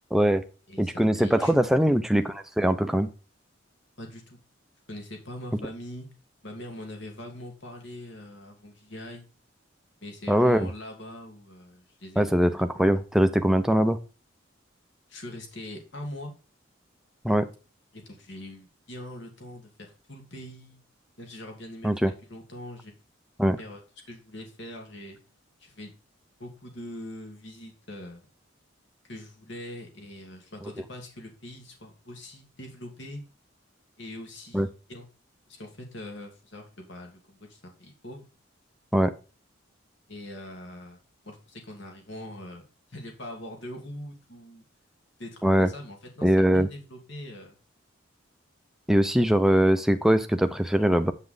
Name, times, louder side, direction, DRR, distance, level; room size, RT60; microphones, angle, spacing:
voice 1, 0.1-0.4 0.8-3.1 10.3-10.7 12.2-14.0 17.2-17.5 21.8-22.1 23.4-23.6 34.5-34.7 38.9-39.1 45.4-45.7 46.2-46.7 48.9-51.1, equal, ahead, 8 dB, 0.6 m, -22 dB
voice 2, 0.7-1.7 4.0-4.4 4.9-6.1 6.4-9.3 10.0-12.4 12.7-13.0 15.1-16.3 17.9-20.8 21.2-22.0 22.3-22.9 23.6-25.2 25.6-25.9 26.4-28.3 29.0-33.2 34.0-35.1 35.5-38.3 40.1-41.0 41.2-42.6 42.9-44.6 45.2-47.6, left 1 dB, 65° left, 2 dB, 2.7 m, -42 dB
8.5 x 5.5 x 3.9 m, 0.34 s
head